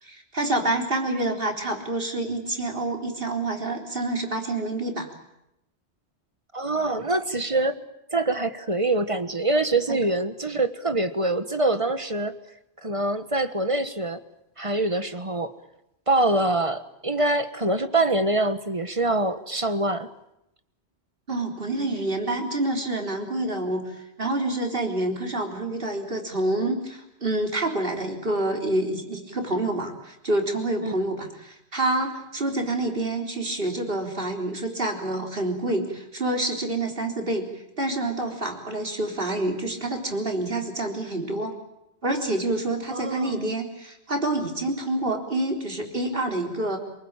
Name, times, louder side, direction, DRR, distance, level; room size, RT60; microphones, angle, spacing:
voice 1, 0.0-5.1 21.3-37.5 37.8-41.5 42.0-46.8, right 2 dB, 55° right, 2 dB, 4.1 m, -27 dB
voice 2, 6.5-7.8 8.1-12.3 12.8-14.2 14.6-15.5 16.1-20.1 30.8-30.9 42.9-43.5, right 2 dB, 30° right, 10 dB, 1.4 m, -25 dB
28.0 x 20.0 x 8.9 m, 0.85 s
omnidirectional pair, 1.1 m